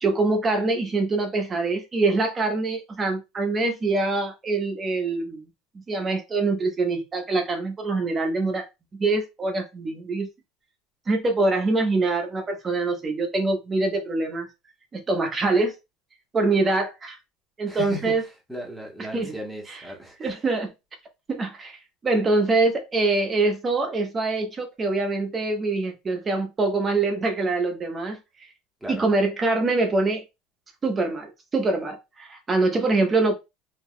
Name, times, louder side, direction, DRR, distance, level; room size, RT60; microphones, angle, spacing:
voice 1, 0.0-5.5 5.9-8.6 9.0-10.3 11.1-14.5 14.9-15.7 16.3-17.2 17.6-18.2 19.1-19.3 20.2-20.7 21.3-21.7 22.0-28.2 28.9-30.2 30.8-33.3, right 3 dB, 25° right, 0.9 m, -24 dB
voice 2, 17.7-18.2 18.5-20.3 28.8-29.0, left 1 dB, 5° right, 1.2 m, -36 dB
3.4 x 2.9 x 2.2 m
supercardioid pair, 120°, 0 cm